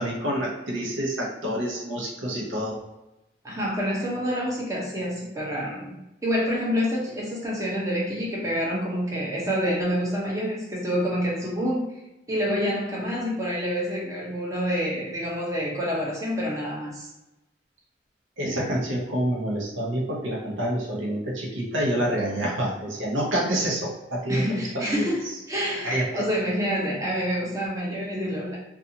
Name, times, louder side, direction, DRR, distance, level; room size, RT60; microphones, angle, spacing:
voice 1, 0.0-2.8 18.4-25.1 25.8-26.3, right 1 dB, 90° right, -2 dB, 0.8 m, -27 dB
voice 2, 3.4-6.0 6.2-11.8 12.3-17.1 24.3-28.6, equal, 15° right, -4 dB, 0.6 m, -27 dB
2.6 x 2.4 x 2.7 m, 0.95 s
head